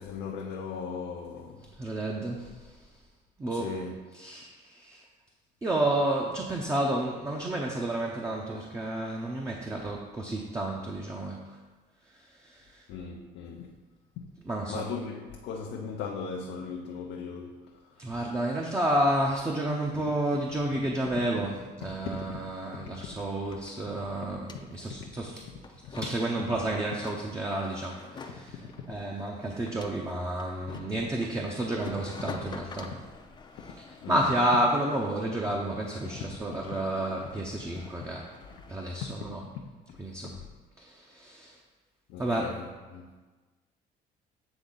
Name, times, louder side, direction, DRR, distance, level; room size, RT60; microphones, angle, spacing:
voice 1, 0.0-1.7 3.5-3.9 12.9-13.8 14.7-18.0 22.0-22.4 24.0-24.1 25.0-25.1 25.4-25.5 34.0-34.3 39.0-39.1 39.5-40.0 40.3-40.5 42.1-43.2, left 5 dB, 85° left, 0.6 m, -38 dB
voice 2, 1.8-2.5 3.4-3.8 4.1-5.0 5.6-11.5 12.3-12.8 14.4-14.9 18.0-25.4 25.7-33.0 33.8-38.2 38.7-39.5 40.0-40.4 40.8-41.6 42.2-42.5, right 1 dB, 15° right, 0.6 m, -31 dB
sound 1, 22.3-22.4 22.6-39.2, left 4 dB, 25° left, 0.5 m, -48 dB
8.0 x 3.5 x 3.9 m
cardioid pair, 110°, 17 cm